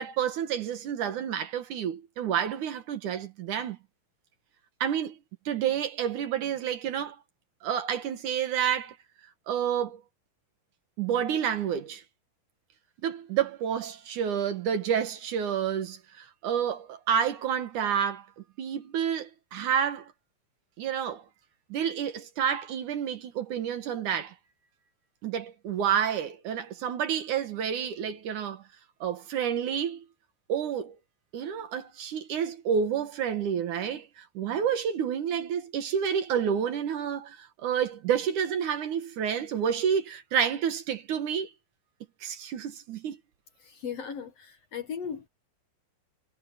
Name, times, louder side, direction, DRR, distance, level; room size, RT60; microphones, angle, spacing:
voice 1, 0.0-3.8 4.8-5.2 5.5-7.2 7.6-9.0 9.5-10.0 11.0-12.0 13.0-18.3 18.6-20.1 20.8-21.3 21.7-24.3 25.2-28.6 29.0-30.0 30.5-31.0 31.3-41.5 42.2-43.2, right 8 dB, 65° right, 2.7 m, -29 dB
voice 2, 43.6-45.3, left 7 dB, 55° left, 2.0 m, -37 dB
omnidirectional pair, 4.1 m